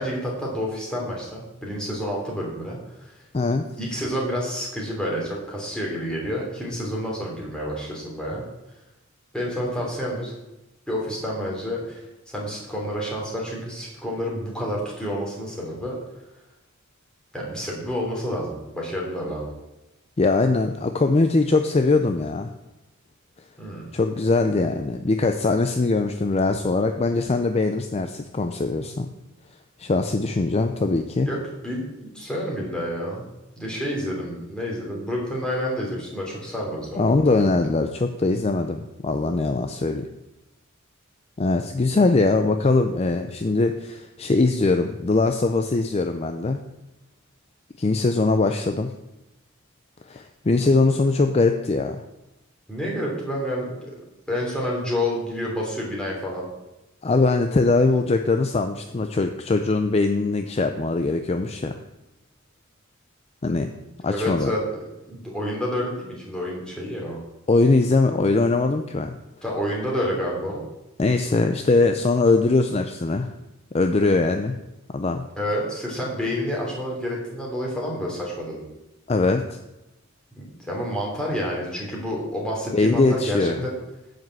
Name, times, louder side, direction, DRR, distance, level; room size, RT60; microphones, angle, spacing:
voice 1, 0.0-3.1 3.8-8.4 9.3-10.3 10.9-12.0 12.3-15.9 17.3-19.5 23.6-23.9 31.2-31.4 31.6-33.3 33.6-37.7 52.7-53.9 54.3-56.5 64.1-64.6 65.1-67.2 69.4-70.6 75.4-78.6 80.4-83.7, equal, 5° left, -3 dB, 3.0 m, -29 dB
voice 2, 3.3-3.6 20.2-22.5 23.9-29.1 29.8-31.3 37.0-40.1 41.4-46.6 47.8-48.9 50.1-52.0 57.0-61.8 63.4-63.7 64.0-64.5 67.5-69.1 71.0-73.3 73.7-74.5 74.9-75.2 79.1-79.4 82.7-83.6, left 3 dB, 30° left, 6 dB, 0.5 m, -21 dB
9.4 x 5.3 x 7.6 m, 0.96 s
head